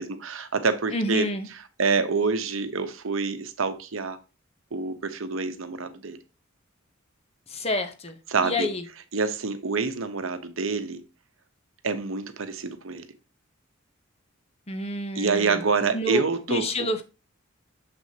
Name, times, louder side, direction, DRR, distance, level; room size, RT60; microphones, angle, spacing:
voice 1, 0.0-1.3 1.8-4.2 4.7-6.2 8.3-8.7 9.1-11.0 11.8-13.1 15.1-16.9, right 4 dB, 75° right, 0.8 m, -27 dB
voice 2, 0.9-1.5 7.5-8.2 8.4-8.8 14.7-15.7 15.9-16.2 16.5-17.0, left 1 dB, 30° left, 0.7 m, -28 dB
6.9 x 6.1 x 2.8 m
head